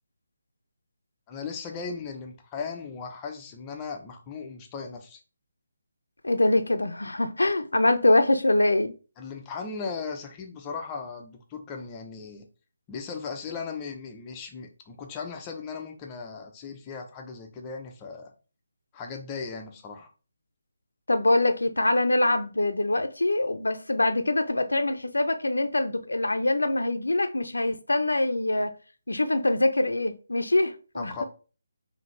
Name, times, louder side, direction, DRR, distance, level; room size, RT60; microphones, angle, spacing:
voice 1, 1.3-5.2 9.2-12.5 12.9-18.3 18.9-20.1 31.0-31.2, left 5 dB, 20° left, 0.7 m, -37 dB
voice 2, 6.2-8.9 21.1-28.7 29.1-31.2, left 2 dB, 85° left, 0.6 m, -24 dB
4.9 x 2.8 x 3.2 m
figure-of-eight pair, 155°, 0 cm